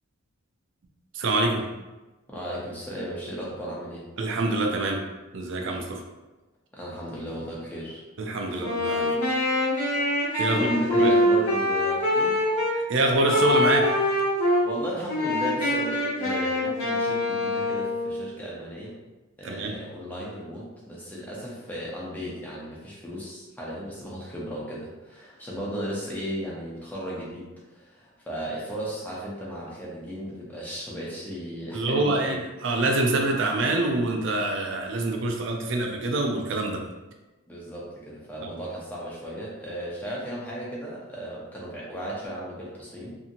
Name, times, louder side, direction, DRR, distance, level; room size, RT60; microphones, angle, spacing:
voice 1, 1.1-1.7 4.2-5.0 5.3-6.0 8.2-9.2 10.4-10.7 11.0-11.1 12.7-14.0 19.4-19.8 31.7-36.8, right 2 dB, 55° right, 2 dB, 0.4 m, -25 dB
voice 2, 2.3-4.0 6.7-8.0 10.5-12.4 14.6-18.9 19.4-32.4 37.5-43.2, equal, 10° left, -6 dB, 0.6 m, -35 dB
Wind instrument woodwind instrument, 8.6-12.8 13.3-14.7 15.1-18.3, left 1 dB, 80° left, 1.0 m, -24 dB
2.8 x 2.7 x 2.5 m, 1.1 s
head